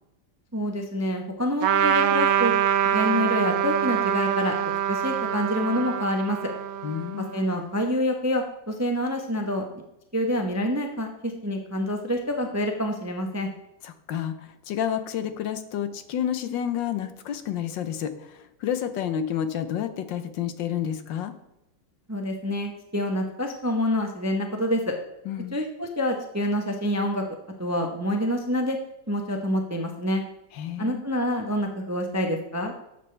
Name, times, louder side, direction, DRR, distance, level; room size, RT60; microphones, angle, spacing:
voice 1, 0.5-2.5 2.8-4.6 4.9-6.4 7.3-9.8 10.1-13.5 22.1-24.9 25.5-27.2 27.6-28.8 29.1-30.2 30.8-32.7, equal, 20° right, 3 dB, 0.4 m, -27 dB
Trumpet, 1.6-7.5, right 9 dB, 70° right, 0.8 m, -24 dB
voice 2, 6.8-7.3 13.8-21.3 25.3-25.6 30.5-31.0, left 9 dB, 80° left, 10 dB, 1.5 m, -30 dB
11.5 x 7.0 x 3.3 m, 0.88 s
omnidirectional pair, 2.0 m